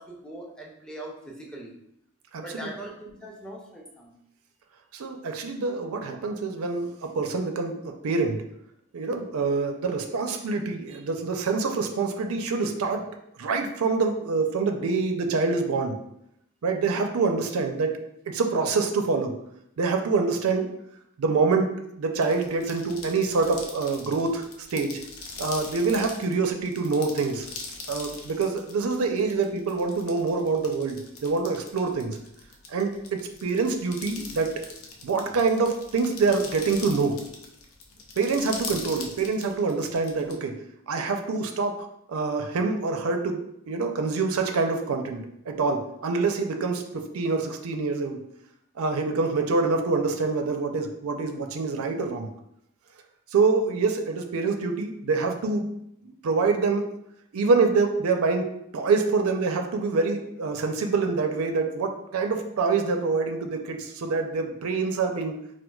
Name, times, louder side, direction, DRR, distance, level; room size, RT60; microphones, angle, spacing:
voice 1, 0.0-1.8 2.4-4.2, right 1 dB, 5° left, -2 dB, 0.5 m, -41 dB
voice 2, 2.3-2.7 4.9-8.4 8.9-13.1 13.4-16.0 16.6-18.0 18.3-19.3 19.8-20.7 21.2-21.7 22.0-24.4 24.7-25.0 25.4-27.5 27.9-32.2 32.7-34.6 35.0-37.2 38.2-40.5 40.9-41.8 42.1-48.2 48.8-52.3 53.3-55.7 56.0-56.9 57.3-58.5 58.7-65.4, right 4 dB, 80° right, 5 dB, 0.4 m, -26 dB
sound 1, 22.1-40.3, left 3 dB, 70° left, 0.5 m, -41 dB
4.4 x 2.2 x 2.3 m, 0.76 s
head